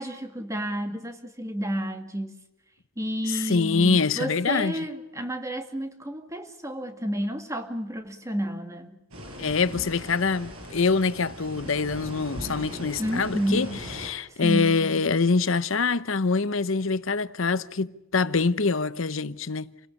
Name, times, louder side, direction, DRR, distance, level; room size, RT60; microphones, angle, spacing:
voice 1, 0.0-2.4 3.0-9.0 13.0-13.7 14.3-14.7, equal, 15° right, 2.2 m, -31 dB
voice 2, 3.5-4.7 9.4-19.7, left 4 dB, 65° left, 0.8 m, -25 dB
sound 1, 9.1-14.1, equal, 80° right, 7.4 m, -39 dB
28.5 x 18.0 x 8.4 m
head